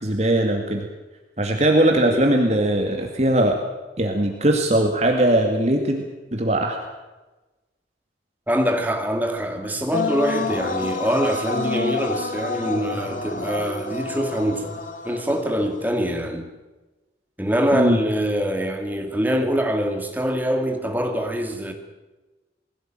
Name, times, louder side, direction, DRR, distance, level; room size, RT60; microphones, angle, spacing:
voice 1, 0.0-0.8 1.4-3.6 4.0-6.0 6.3-6.8 17.7-18.0, right 1 dB, 40° right, 2.4 m, -20 dB
voice 2, 8.5-16.5 17.4-21.7, equal, 10° right, 2.5 m, -24 dB
sound 1, 9.9-16.0, left 3 dB, 50° left, 2.1 m, -29 dB
21.5 x 16.5 x 9.1 m
head